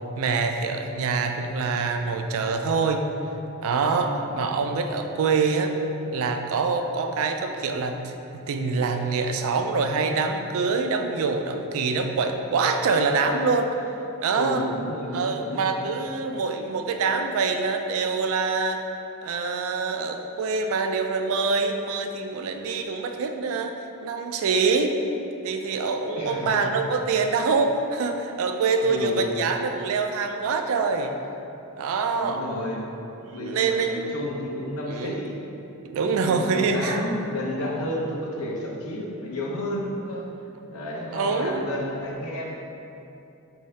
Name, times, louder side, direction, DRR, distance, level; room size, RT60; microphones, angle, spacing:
voice 1, 0.2-3.0 3.6-5.7 6.1-13.7 14.2-14.7 15.1-18.8 19.2-23.7 24.0-24.9 25.4-31.1 31.8-32.4 33.2-34.1 34.9-35.2 35.9-37.0 41.1-41.7, right 4 dB, 65° right, 5 dB, 0.3 m, -25 dB
voice 2, 4.0-4.5 14.3-15.8 26.1-26.7 28.8-29.4 32.2-32.8 33.3-35.3 36.0-40.3 40.7-42.6, left 1 dB, 75° left, -3 dB, 0.6 m, -32 dB
4.6 x 2.7 x 3.2 m, 2.8 s
head